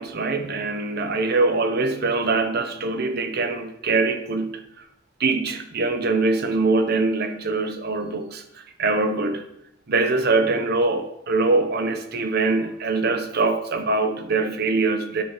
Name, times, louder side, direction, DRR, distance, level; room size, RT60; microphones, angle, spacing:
voice 1, 0.0-4.9 5.2-9.5 9.9-15.2, right 3 dB, 50° right, 0.7 m, -23 dB
10.0 x 4.0 x 5.3 m
head